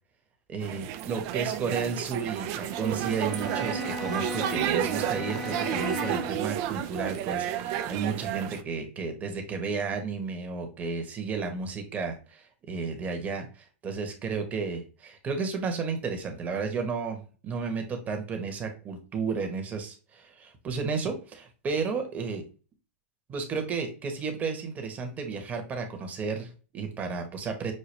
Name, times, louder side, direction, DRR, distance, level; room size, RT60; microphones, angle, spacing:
voice 1, 0.5-22.4 23.3-27.7, right 5 dB, 20° right, 4 dB, 1.2 m, -33 dB
sound 1, 0.6-8.6, right 11 dB, 45° right, 0.4 m, -31 dB
Bowed string instrument, 2.5-6.5, left 3 dB, ahead, 0.9 m, -37 dB
6.6 x 2.3 x 3.3 m, 0.36 s
hypercardioid pair, 130°, 7 cm